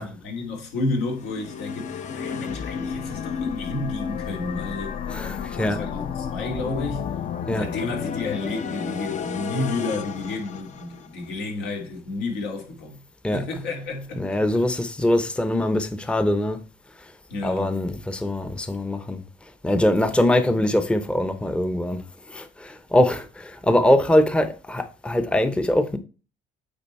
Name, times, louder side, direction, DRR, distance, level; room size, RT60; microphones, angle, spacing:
voice 1, 0.0-5.0 5.5-7.1 7.5-13.0 13.3-14.4 17.3-17.7 20.4-20.6, left 3 dB, 85° left, 2.6 m, -31 dB
sound 1, 1.1-11.3, left 7 dB, 45° left, 0.7 m, -32 dB
voice 2, 5.1-5.8 7.5-7.7 13.2-13.5 14.2-16.6 17.4-19.2 19.6-22.0 22.3-26.0, left 1 dB, 5° left, 0.7 m, -22 dB
8.9 x 3.9 x 4.1 m
cardioid pair, 110°, 17 cm